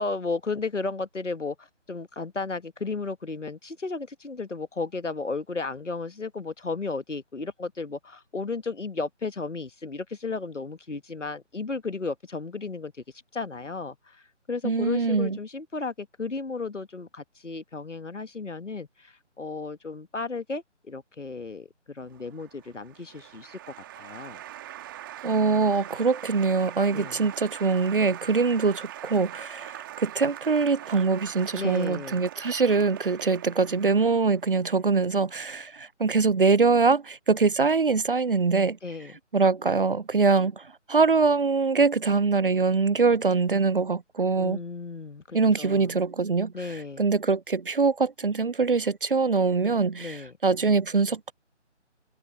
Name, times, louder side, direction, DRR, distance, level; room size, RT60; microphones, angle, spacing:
voice 1, 0.0-12.9 13.3-24.4 26.9-27.2 31.5-32.3 38.8-39.1 44.4-45.9 46.5-47.0 50.0-50.3, left 3 dB, 75° left, 1.4 m, -34 dB
voice 2, 14.6-15.4 25.2-38.8 39.3-44.6 45.3-46.5 47.0-51.3, right 4 dB, 45° right, 0.5 m, -23 dB
Applause, 22.1-34.5, right 13 dB, 15° right, 2.1 m, -42 dB
figure-of-eight pair, 150°, 36 cm